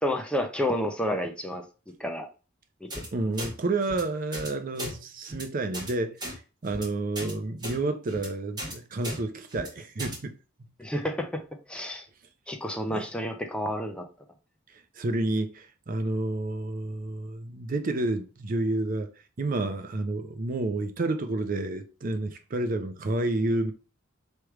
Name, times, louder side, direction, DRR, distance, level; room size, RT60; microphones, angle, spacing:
voice 1, 0.0-1.6 2.0-2.3 2.8-3.0 10.8-11.4 11.7-12.0 12.5-14.0, left 1 dB, 5° left, 0.5 m, -30 dB
sound 1, 2.9-3.1 3.4-3.5 3.8-4.0 4.3-4.5 4.8-4.9 5.2-5.4 5.7-5.9 6.2-6.3 6.7-6.8 7.1-7.3 7.6-7.8 8.1-8.3 8.6-8.7 9.0-9.2 9.5-9.7 10.0-10.2, equal, 20° right, 1.6 m, -36 dB
voice 2, 3.1-10.3 12.9-13.1 15.0-19.1 19.4-23.7, right 2 dB, 40° right, 0.5 m, -30 dB
3.3 x 3.1 x 4.7 m
head